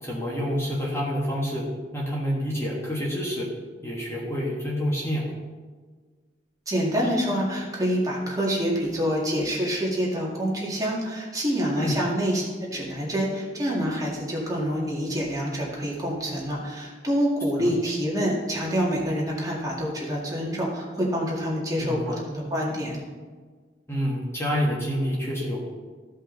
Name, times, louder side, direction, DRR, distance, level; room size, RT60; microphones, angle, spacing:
voice 1, 0.0-1.6 1.9-3.5 3.8-5.3 11.7-12.0 17.6-17.7 21.8-22.2 23.9-25.7, equal, 15° left, -4 dB, 1.4 m, -28 dB
voice 2, 6.7-12.5 12.7-23.0, equal, 20° right, -4 dB, 2.1 m, -26 dB
14.5 x 5.4 x 3.9 m, 1.5 s
head